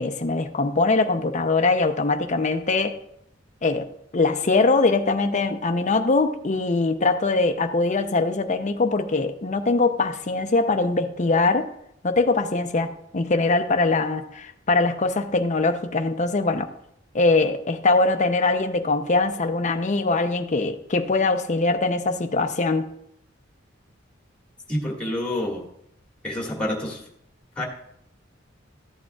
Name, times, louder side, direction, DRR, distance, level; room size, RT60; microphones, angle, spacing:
voice 1, 0.0-3.0 3.6-11.7 12.0-16.7 17.1-22.9, left 3 dB, 40° left, 7 dB, 0.6 m, -22 dB
voice 2, 24.7-25.6 26.2-27.0 27.6-27.7, left 1 dB, 5° left, -1 dB, 1.8 m, -27 dB
14.0 x 8.6 x 2.3 m, 0.75 s
head